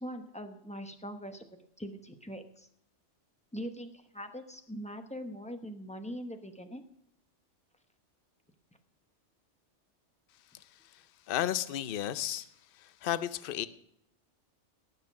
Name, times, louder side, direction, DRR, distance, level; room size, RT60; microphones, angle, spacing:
voice 1, 0.0-1.5 1.8-2.7 3.5-6.8, equal, 5° left, 6 dB, 0.9 m, -42 dB
voice 2, 10.9-12.5 12.8-13.7, left 11 dB, 55° left, 14 dB, 0.8 m, -33 dB
18.0 x 6.7 x 5.9 m, 0.73 s
omnidirectional pair, 1.2 m